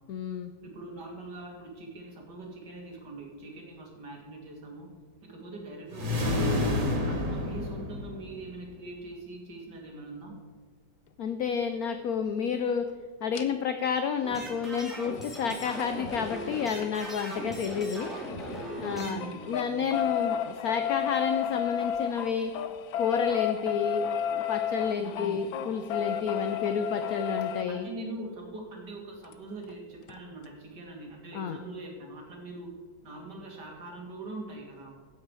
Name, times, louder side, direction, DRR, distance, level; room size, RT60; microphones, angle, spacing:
voice 1, 0.1-0.5 11.2-12.9 13.2-18.1 18.8-19.2 19.5-22.5 23.0-27.9 31.3-31.6, left 6 dB, 70° left, 8 dB, 0.9 m, -30 dB
voice 2, 0.6-4.9 5.2-6.7 7.1-10.4 18.8-20.1 25.0-25.4 27.7-35.0, right 2 dB, 60° right, 1 dB, 2.7 m, -42 dB
sound 1, 5.9-8.5, left 2 dB, 80° right, 3.0 m, -29 dB
sound 2, 13.3-13.4 15.1-18.6 18.9-27.6 29.3-29.4 29.7-29.8 30.1-30.2, left 9 dB, 90° left, 1.5 m, -32 dB
sound 3, 14.2-19.1, equal, ahead, 3.0 m, -38 dB
15.5 x 7.3 x 4.8 m, 1.5 s
omnidirectional pair, 2.1 m